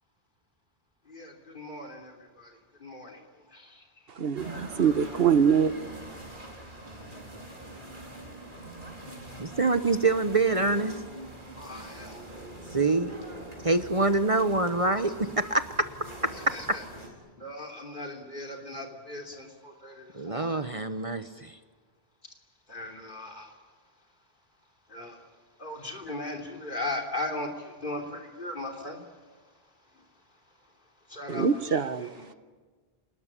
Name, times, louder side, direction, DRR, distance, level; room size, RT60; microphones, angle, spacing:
voice 1, 1.1-4.0 8.6-8.8 9.2-9.6 11.6-12.2 16.3-16.8 17.4-20.7 22.2-22.3 22.7-23.6 24.9-25.3 25.6-29.3 29.9-30.0 31.1-32.3, left 2 dB, 55° left, 3.4 m, -39 dB
voice 2, 4.2-5.7 31.3-32.1, right 7 dB, 70° right, 1.2 m, -24 dB
sound 1, 4.4-17.1, right 1 dB, 55° right, 4.5 m, -44 dB
voice 3, 9.4-11.0 12.7-13.1 13.6-15.9 20.1-21.6, right 3 dB, 35° right, 1.0 m, -25 dB
27.5 x 20.0 x 9.8 m
omnidirectional pair, 1.0 m